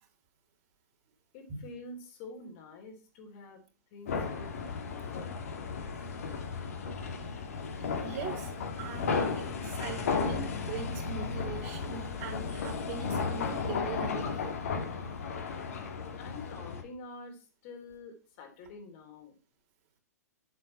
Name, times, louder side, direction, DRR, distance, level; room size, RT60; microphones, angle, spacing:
voice 1, 1.3-3.6 3.9-5.3 6.2-6.5 16.1-19.4, left 3 dB, 45° left, 3 dB, 3.6 m, -47 dB
sound 1, 4.1-16.8, left 5 dB, 60° left, 2.4 m, -34 dB
voice 2, 7.8-8.5 8.8-14.3, right 6 dB, 40° right, 3 dB, 3.4 m, -41 dB
9.8 x 7.7 x 4.5 m, 0.34 s
figure-of-eight pair, 110°, 9 cm